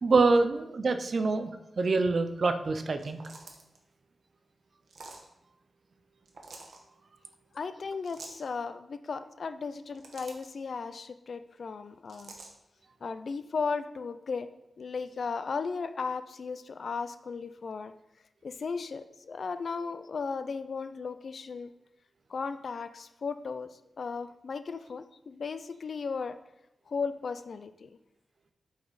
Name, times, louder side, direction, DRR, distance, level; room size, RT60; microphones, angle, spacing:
voice 1, 0.0-1.5 1.8-3.2, right 3 dB, 45° right, 9 dB, 0.5 m, -25 dB
sound 1, 2.9-3.8 4.9-5.3 6.3-6.8 8.0-8.4 9.7-10.5 12.1-12.5, right 3 dB, 70° right, 1.1 m, -47 dB
voice 2, 7.5-12.4 13.0-14.5 14.8-17.9 18.4-21.7 22.3-26.4 26.9-28.0, left 5 dB, 50° left, 11 dB, 0.4 m, -36 dB
8.1 x 5.0 x 4.0 m, 0.89 s
wide cardioid pair, 180°, 0 cm